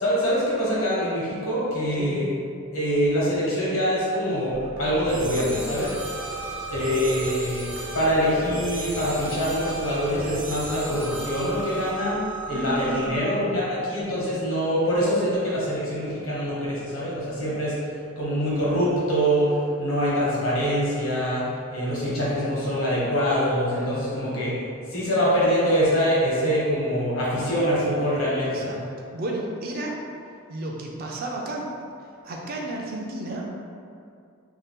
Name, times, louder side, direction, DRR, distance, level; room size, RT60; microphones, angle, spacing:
voice 1, 0.0-2.3 2.7-5.9 6.6-12.2 12.5-17.8 18.2-21.5 21.7-24.5 24.9-28.7, equal, 70° left, -7 dB, 1.0 m, -24 dB
sound 1, 4.5-13.2, right 2 dB, 40° left, 0.4 m, -39 dB
sound 2, 5.1-11.9, right 1 dB, 70° right, 0.7 m, -34 dB
voice 2, 12.5-13.6 28.4-28.8 29.1-30.0 30.5-31.7 32.2-33.5, right 2 dB, 40° right, -1 dB, 0.3 m, -32 dB
2.7 x 2.3 x 3.5 m, 2.4 s
head